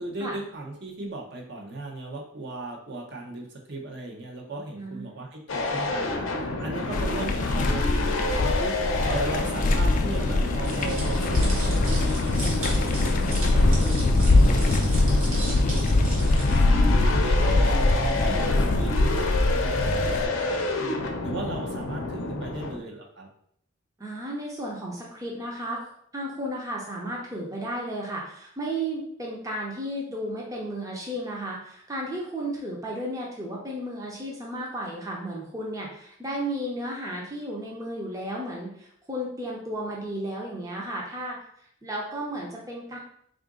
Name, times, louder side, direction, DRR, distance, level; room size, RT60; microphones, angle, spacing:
voice 1, 0.0-8.8 9.1-16.5 16.8-23.3, right 2 dB, 55° right, 0 dB, 0.7 m, -37 dB
voice 2, 4.8-5.1 17.5-17.6 24.0-25.9 26.1-41.4 41.8-43.0, right 1 dB, 15° right, -3 dB, 0.6 m, -33 dB
sound 1, 5.5-22.8, left 2 dB, 85° left, 0.6 m, -29 dB
sound 2, 6.9-20.2, left 2 dB, 40° left, 0.3 m, -23 dB
sound 3, 10.6-16.6, right 2 dB, 80° right, 1.3 m, -38 dB
3.7 x 2.5 x 3.6 m, 0.68 s
head